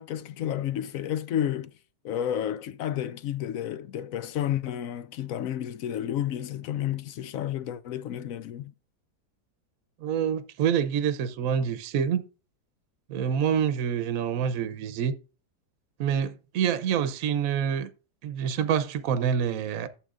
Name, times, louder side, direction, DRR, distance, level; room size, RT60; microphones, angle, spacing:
voice 1, 0.0-1.7 2.0-8.7, left 10 dB, 70° left, 0.8 m, -31 dB
voice 2, 10.0-12.2 13.1-15.1 16.0-17.9 18.2-19.9, right 8 dB, 60° right, 1.1 m, -26 dB
11.5 x 7.7 x 2.5 m
omnidirectional pair, 1.8 m